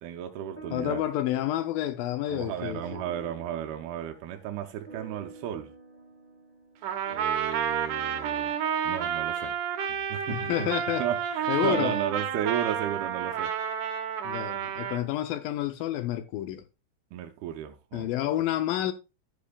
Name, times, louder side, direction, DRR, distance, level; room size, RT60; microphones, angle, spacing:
voice 1, 0.0-1.0 2.3-5.7 7.1-8.6 8.8-9.6 9.9-10.7 11.0-13.5 17.1-18.1, right 10 dB, 90° right, 2.6 m, -34 dB
sound 1, 0.6-9.2, right 3 dB, 15° right, 1.7 m, -50 dB
voice 2, 0.7-3.0 10.3-11.0 11.5-12.0 14.2-16.6 17.9-18.9, left 13 dB, 80° left, 2.1 m, -29 dB
Trumpet, 6.8-15.0, right 8 dB, 70° right, 2.3 m, -30 dB
11.0 x 8.5 x 2.3 m
omnidirectional pair, 4.3 m